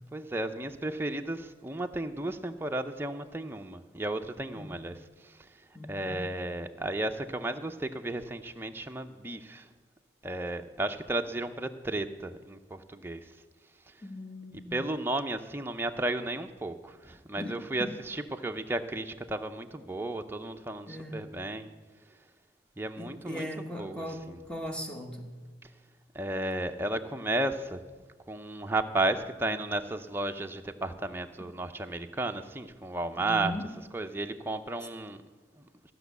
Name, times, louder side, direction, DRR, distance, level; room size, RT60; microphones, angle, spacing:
voice 1, 0.1-4.9 5.2-5.3 5.8-9.7 10.2-13.2 14.5-21.7 22.8-24.4 26.1-27.8 28.3-33.5 33.9-35.2 35.6-35.7, right 2 dB, 15° right, 0.5 m, -33 dB
voice 2, 5.7-6.3 14.0-14.8 17.3-18.0 20.9-21.4 23.0-25.4 33.2-33.7, left 1 dB, 5° left, 1.0 m, -39 dB
14.5 x 6.1 x 8.1 m
head